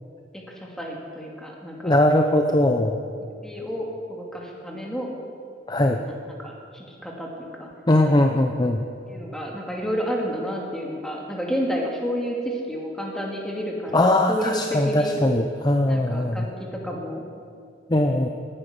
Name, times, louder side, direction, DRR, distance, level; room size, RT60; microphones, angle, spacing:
voice 1, 0.3-1.9 3.3-5.1 6.0-7.7 9.1-15.2 15.9-17.2, equal, 5° left, -2 dB, 2.4 m, -31 dB
voice 2, 1.8-3.0 5.7-6.0 7.9-8.8 13.9-16.5 17.9-18.3, left 1 dB, 25° left, 4 dB, 0.6 m, -20 dB
18.0 x 10.0 x 6.8 m, 2.4 s
head